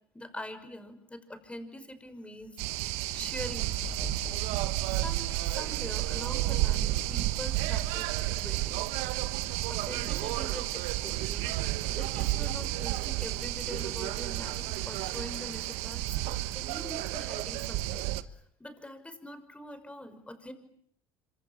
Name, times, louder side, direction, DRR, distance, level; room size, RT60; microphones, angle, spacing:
voice 1, 0.1-2.6 3.1-4.5 5.0-8.8 9.7-11.5 12.0-18.1 18.6-20.5, left 1 dB, 10° left, 10 dB, 5.8 m, -44 dB
sound 1, 2.6-18.2, right 16 dB, 80° right, 1.3 m, -31 dB
26.0 x 25.0 x 9.0 m, 0.68 s
supercardioid pair, 90°, 11 cm